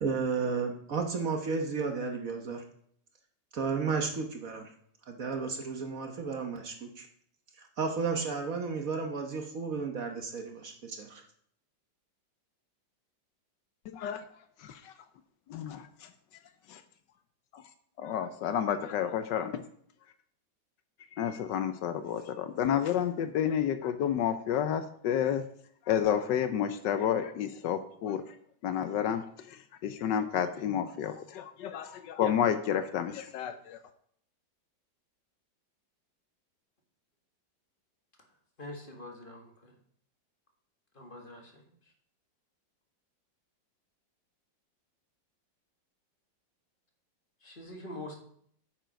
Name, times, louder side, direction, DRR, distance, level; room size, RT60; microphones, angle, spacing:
voice 1, 0.0-2.6 3.5-4.7 5.1-7.1 7.6-11.2, right 5 dB, 50° right, 4 dB, 1.3 m, -33 dB
voice 2, 13.9-14.2 14.6-14.9 15.5-16.1 16.7-16.8 17.5-17.6 18.0-19.6 21.2-25.4 25.9-28.2 28.6-33.8, left 9 dB, 75° left, 10 dB, 1.2 m, -30 dB
voice 3, 38.6-39.5 41.0-41.5 47.4-48.2, left 1 dB, 30° left, 2 dB, 1.7 m, -44 dB
9.0 x 7.1 x 5.1 m, 0.65 s
omnidirectional pair, 2.0 m